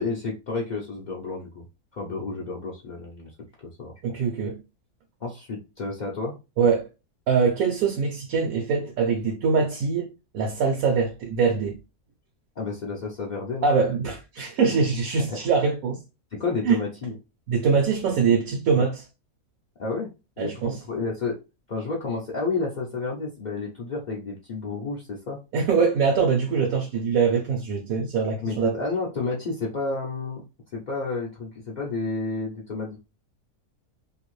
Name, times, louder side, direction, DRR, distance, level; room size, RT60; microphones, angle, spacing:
voice 1, 0.0-1.6 1.9-3.3 3.8-3.9 5.2-6.3 12.6-13.7 15.3-15.4 16.3-17.1 18.7-18.9 19.8-20.1 20.4-21.4 21.7-25.4 28.4-30.4 30.7-33.0, left 3 dB, 60° left, 0.4 m, -30 dB
voice 2, 4.0-4.6 6.6-6.9 7.3-10.1 10.3-11.8 13.6-16.0 16.6-16.8 17.5-19.0 20.4-20.8 25.5-28.7, right 5 dB, 70° right, 1.1 m, -23 dB
2.8 x 2.5 x 3.1 m
omnidirectional pair, 1.6 m